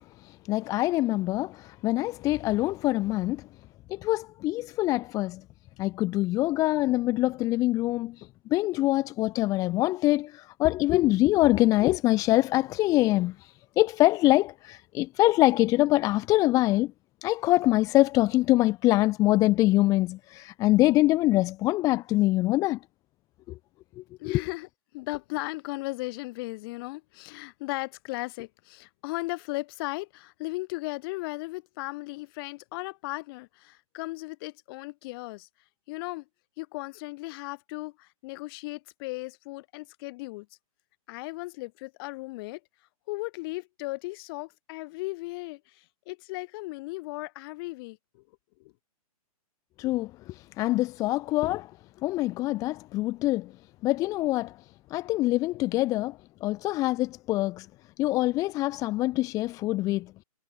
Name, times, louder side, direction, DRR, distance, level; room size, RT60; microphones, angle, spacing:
voice 1, 0.0-3.4 3.9-5.4 5.8-16.9 17.2-22.8 24.0-24.4 49.8-51.7 52.0-53.5 53.8-54.6 54.9-57.7 58.0-60.1, left 17 dB, 15° left, 0.5 m, -24 dB
voice 2, 24.2-35.5 35.9-36.3 36.6-40.5 41.1-42.6 43.1-48.2 48.6-48.7, left 23 dB, 40° left, 6.9 m, -36 dB
hypercardioid pair, 145°, 19 cm